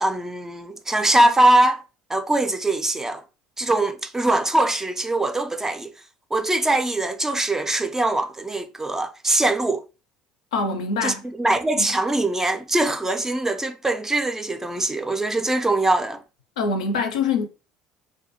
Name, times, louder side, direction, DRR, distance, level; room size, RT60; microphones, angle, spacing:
voice 1, 0.0-1.8 2.1-3.2 3.6-5.9 6.3-9.8 11.0-16.2, right 1 dB, 10° right, 0.3 m, -22 dB
voice 2, 10.5-11.2 11.7-11.9 16.6-17.5, left 4 dB, 80° left, 0.4 m, -24 dB
2.4 x 2.2 x 2.7 m
hypercardioid pair, 65°, 3 cm